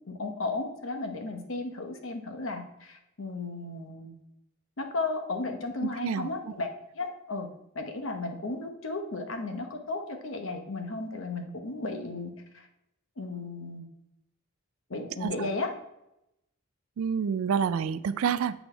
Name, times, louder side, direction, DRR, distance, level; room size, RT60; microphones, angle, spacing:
voice 1, 0.0-4.1 4.8-6.7 6.9-7.5 7.7-12.7 13.2-13.8 14.9-15.7, left 3 dB, 65° left, 5 dB, 1.0 m, -34 dB
voice 2, 17.0-18.5, right 7 dB, 75° right, 14 dB, 0.3 m, -28 dB
7.9 x 4.1 x 4.4 m, 0.85 s
head